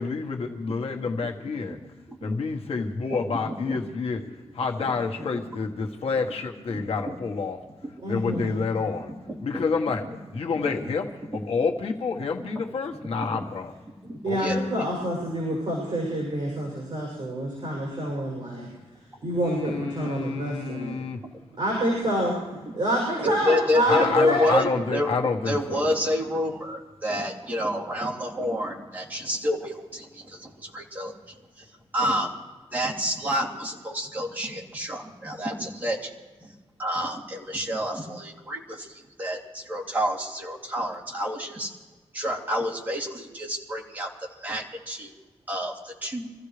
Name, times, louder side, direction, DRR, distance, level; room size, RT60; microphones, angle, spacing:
voice 1, 0.0-1.8 2.2-4.2 4.5-7.6 8.1-9.1 9.4-13.7 14.2-14.7 19.4-21.2 23.9-25.8, left 4 dB, 70° left, 3 dB, 1.4 m, -28 dB
voice 2, 3.1-3.8 4.8-4.9 6.7-7.1 7.8-7.9 8.3-8.4 9.3-9.6 10.6-10.8 13.2-13.4 14.0-14.8 20.7-20.8 22.6-22.7 23.2-25.1 25.5-31.2 31.6-31.7 31.9-32.3 32.7-36.1 36.4-36.5 36.8-41.7 42.1-44.1 44.4-45.1 45.5-46.3, equal, 15° right, -4 dB, 2.9 m, -29 dB
voice 3, 8.0-8.7 14.2-18.7 19.2-21.0 21.6-22.3 22.7-24.5, right 1 dB, 50° right, -2 dB, 6.8 m, -27 dB
26.5 x 15.5 x 3.3 m, 1.3 s
wide cardioid pair, 135°, 10 cm